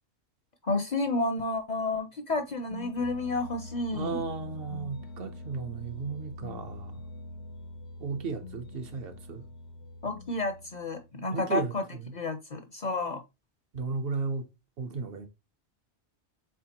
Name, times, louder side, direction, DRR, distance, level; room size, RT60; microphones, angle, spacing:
voice 1, 0.6-4.2 10.0-11.8 12.1-13.2, left 2 dB, 50° left, 0.6 m, -31 dB
sound 1, 2.5-11.3, left 2 dB, 80° left, 0.9 m, -44 dB
voice 2, 3.9-7.0 8.0-9.4 11.3-11.7 12.0-12.1 13.7-14.5 14.8-15.3, right 4 dB, 60° right, 0.8 m, -34 dB
4.5 x 3.7 x 2.8 m
omnidirectional pair, 1.1 m